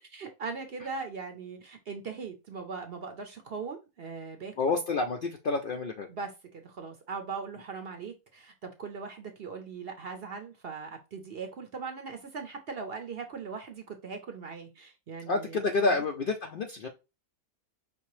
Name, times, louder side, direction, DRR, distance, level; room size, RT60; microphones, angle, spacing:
voice 1, 0.1-4.7 6.1-16.0, right 5 dB, 55° right, 0.7 m, -40 dB
voice 2, 4.6-6.1 15.3-16.9, left 3 dB, 85° left, 0.4 m, -29 dB
5.2 x 2.8 x 3.0 m
omnidirectional pair, 1.6 m